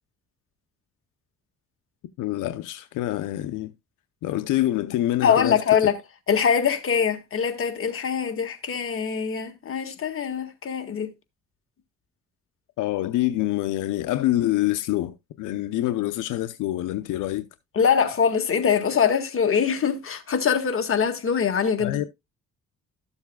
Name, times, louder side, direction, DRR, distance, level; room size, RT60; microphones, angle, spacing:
voice 1, 2.2-3.7 4.2-5.6 12.8-17.4 21.8-22.1, left 15 dB, 90° left, 0.7 m, -26 dB
voice 2, 5.2-6.0 6.3-11.1 17.7-22.0, left 7 dB, 45° left, 1.7 m, -23 dB
13.0 x 7.2 x 2.3 m
cardioid pair, 90°, 30 cm